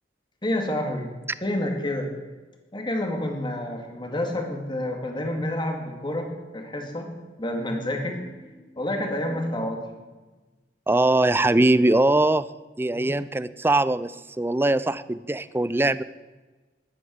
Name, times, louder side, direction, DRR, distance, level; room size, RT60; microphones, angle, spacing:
voice 1, 0.4-1.1 1.4-2.1 2.7-9.8 12.9-13.1, left 1 dB, 25° left, 3 dB, 2.3 m, -29 dB
voice 2, 10.9-12.5 12.8-16.0, right 2 dB, 15° right, 16 dB, 0.4 m, -21 dB
13.5 x 11.5 x 6.5 m, 1.2 s
head